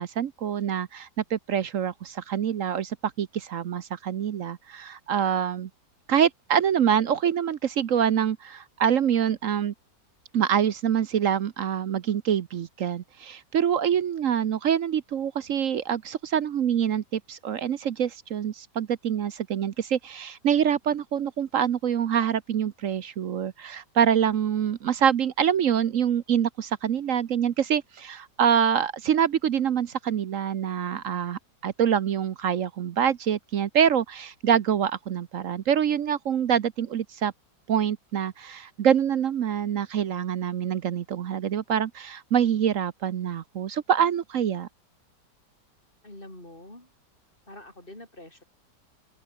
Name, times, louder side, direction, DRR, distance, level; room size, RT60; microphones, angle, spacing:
voice 1, 0.0-5.7 6.1-9.7 10.3-37.3 37.7-44.7, right 8 dB, 60° right, 1.0 m, -25 dB
voice 2, 46.0-46.9 47.5-48.4, left 1 dB, 30° left, 6.6 m, -45 dB
open air
omnidirectional pair, 1.9 m